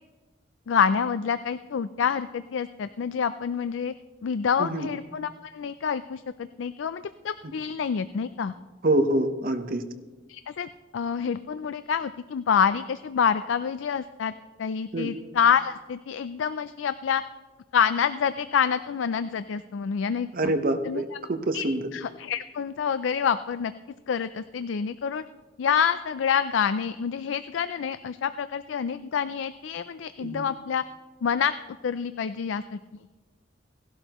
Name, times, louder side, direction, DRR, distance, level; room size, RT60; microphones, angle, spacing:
voice 1, 0.7-3.9 4.2-8.5 10.3-14.3 14.6-17.2 17.7-20.5 20.8-21.0 21.5-21.7 21.9-23.7 24.1-25.2 25.6-30.8 31.2-31.5 31.8-32.8, left 7 dB, 80° left, 13 dB, 0.4 m, -27 dB
voice 2, 8.8-9.8 14.9-15.1 20.3-21.9 30.2-30.4, right 1 dB, 50° right, 8 dB, 1.0 m, -26 dB
17.5 x 12.0 x 3.0 m, 1.3 s
head